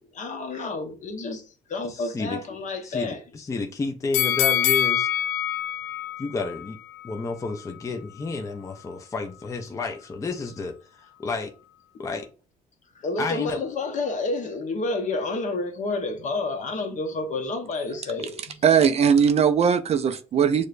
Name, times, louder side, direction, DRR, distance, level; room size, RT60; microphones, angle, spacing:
voice 1, 0.1-1.4 1.7-3.2 12.9-18.6, left 3 dB, 45° left, 0.9 m, -29 dB
voice 2, 1.9-2.4 2.8-5.1 6.2-6.8 7.0-10.7 11.2-11.5 12.0-12.3 13.2-13.6, left 3 dB, 20° left, 0.5 m, -31 dB
sound 1, 4.1-7.2 7.6-7.7, left 10 dB, 85° left, 0.4 m, -25 dB
voice 3, 18.6-20.6, right 7 dB, 40° right, 0.4 m, -19 dB
6.3 x 2.2 x 2.5 m
cardioid pair, 110°, 17 cm